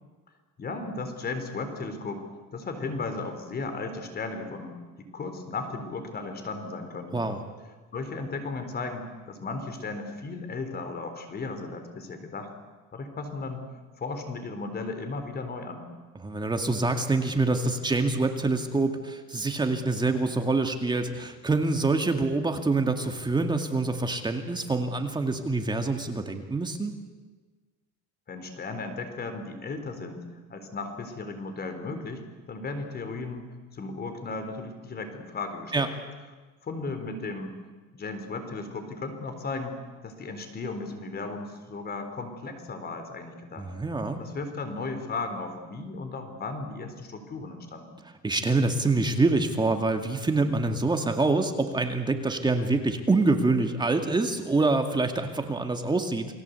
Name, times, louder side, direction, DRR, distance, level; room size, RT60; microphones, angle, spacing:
voice 1, 0.6-2.2 2.5-7.3 7.9-12.5 12.9-13.7 14.0-15.9 28.3-30.2 30.5-33.5 33.7-35.9 36.6-37.5 37.9-39.8 40.0-43.7 44.2-48.0, left 3 dB, 30° left, 7 dB, 4.0 m, -35 dB
voice 2, 16.2-26.9 35.7-35.9 43.6-44.2 48.2-56.3, right 3 dB, 15° right, 5 dB, 2.2 m, -26 dB
29.5 x 21.0 x 8.3 m, 1.3 s
cardioid pair, 140°, 30 cm